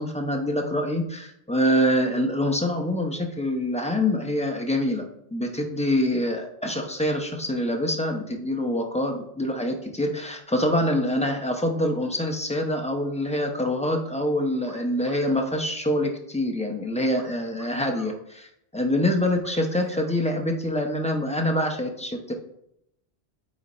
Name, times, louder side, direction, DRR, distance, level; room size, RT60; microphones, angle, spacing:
voice 1, 0.0-5.0 5.3-22.3, left 1 dB, 5° left, 2 dB, 0.7 m, -25 dB
sound 1, 14.6-15.6 17.1-18.2 19.4-20.1, right 1 dB, 35° right, 1.3 m, -46 dB
8.3 x 3.9 x 4.3 m, 0.78 s
omnidirectional pair, 1.1 m